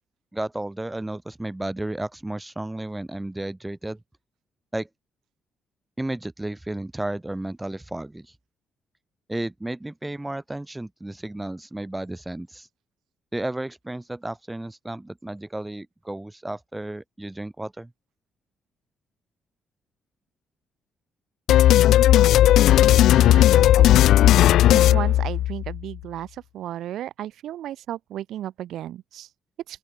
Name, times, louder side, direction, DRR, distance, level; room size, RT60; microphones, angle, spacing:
voice 1, 0.3-4.0 4.7-4.9 6.0-8.3 9.3-12.7 13.3-17.9, right 1 dB, 10° right, 2.1 m, -33 dB
sound 1, 21.5-25.8, left 13 dB, 80° left, 0.6 m, -15 dB
voice 2, 22.9-23.7 23.9-24.1 24.9-26.3 26.5-29.3, right 12 dB, 80° right, 2.6 m, -34 dB
open air
cardioid pair, 90°, 0 cm